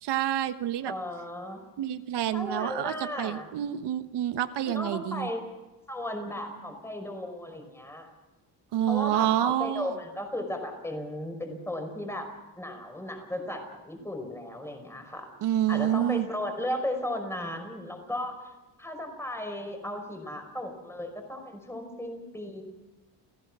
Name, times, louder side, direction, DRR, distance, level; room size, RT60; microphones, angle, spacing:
voice 1, 0.0-0.9 1.8-5.3 8.7-9.9 15.4-16.3, right 12 dB, 75° right, 10 dB, 1.3 m, -28 dB
voice 2, 0.9-1.6 2.3-3.5 4.7-5.4 5.9-8.1 8.9-12.3 12.6-15.3 15.7-18.5 18.8-22.6, left 1 dB, 5° left, 4 dB, 5.4 m, -35 dB
29.5 x 16.5 x 6.2 m, 1.1 s
cardioid pair, 120°, 42 cm